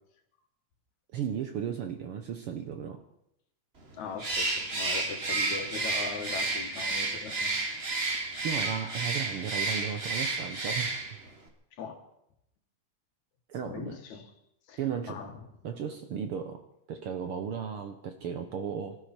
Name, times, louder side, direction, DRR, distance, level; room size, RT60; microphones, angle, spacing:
voice 1, 1.1-3.0 8.4-11.0 13.5-14.0 14.8-15.2 15.6-16.6 16.9-19.0, right 8 dB, 65° right, 7 dB, 1.5 m, -35 dB
voice 2, 3.9-7.6 11.7-12.0 13.6-14.3 14.7-14.8 15.1-15.4, left 6 dB, 75° left, 5 dB, 3.0 m, -40 dB
Bird, 4.2-11.3, right 3 dB, 25° right, 1.6 m, -31 dB
sound 1, 5.3-5.7 8.6-9.0, left 2 dB, 5° right, 3.6 m, -45 dB
24.5 x 13.0 x 4.4 m, 0.80 s
omnidirectional pair, 3.4 m